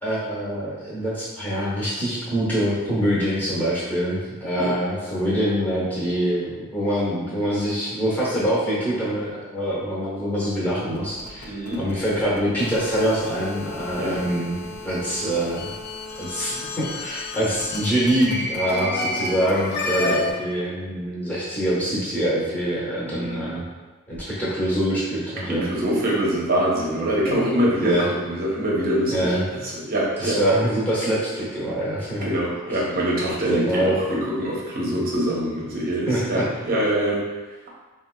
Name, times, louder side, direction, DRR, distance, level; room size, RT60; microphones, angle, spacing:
voice 1, 0.0-11.5 11.8-15.7 16.2-23.6 24.1-25.7 27.8-28.1 29.1-29.5 30.2-32.3 33.5-34.0 34.9-35.0 36.1-36.2, right 1 dB, 10° left, -9 dB, 0.9 m, -24 dB
sound 1, 10.7-20.3, left 2 dB, 50° left, 0.4 m, -31 dB
voice 2, 11.4-11.8 13.9-14.1 20.0-20.1 23.1-23.6 25.4-29.4 29.7-30.4 32.2-37.2, right 1 dB, 40° right, -4 dB, 0.7 m, -24 dB
4.0 x 2.3 x 2.2 m, 1.2 s
head